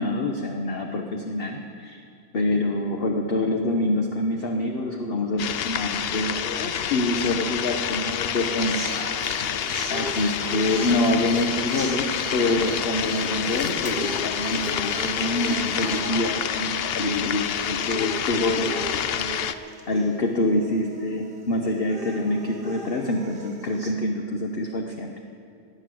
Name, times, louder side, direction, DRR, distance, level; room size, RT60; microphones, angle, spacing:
voice 1, 0.0-2.0 2.3-9.0 9.9-25.1, left 2 dB, 45° left, 2 dB, 1.1 m, -26 dB
sound 1, 5.4-19.5, left 9 dB, 65° left, 0.6 m, -28 dB
sound 2, 7.9-23.9, right 2 dB, 35° right, 1.6 m, -39 dB
sound 3, 8.6-16.0, right 4 dB, 60° right, 1.4 m, -42 dB
17.5 x 10.0 x 7.7 m, 2.3 s
omnidirectional pair, 1.6 m